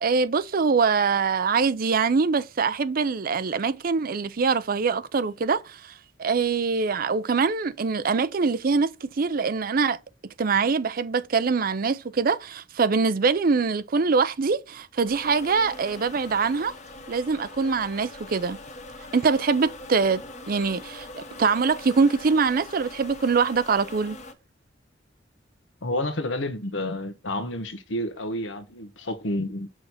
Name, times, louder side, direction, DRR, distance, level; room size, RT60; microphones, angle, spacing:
voice 1, 0.0-5.9 6.2-10.0 10.4-16.7 17.1-18.6 19.1-24.2, right 5 dB, 50° right, 0.5 m, -23 dB
sound 1, 15.0-24.3, left 2 dB, 40° left, 1.2 m, -42 dB
voice 2, 25.8-29.7, left 1 dB, 85° left, 1.2 m, -30 dB
6.3 x 6.3 x 4.1 m
head